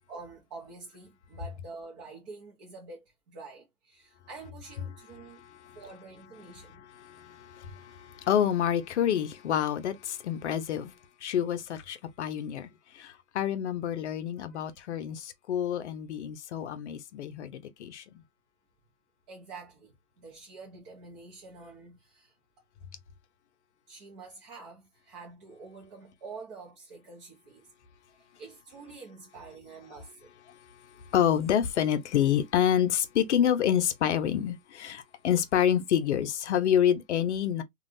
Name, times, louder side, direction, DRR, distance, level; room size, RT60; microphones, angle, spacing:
voice 1, 0.1-5.4 5.7-6.8 14.4-14.7 19.3-22.3 23.9-27.7 28.1-30.3, right 4 dB, 25° right, 0.9 m, -47 dB
voice 2, 5.2-5.8 6.6-10.9 11.2-12.7 12.9-18.0 31.1-37.6, left 9 dB, 50° left, 0.7 m, -28 dB
3.3 x 2.5 x 2.6 m
hypercardioid pair, 145°, 46 cm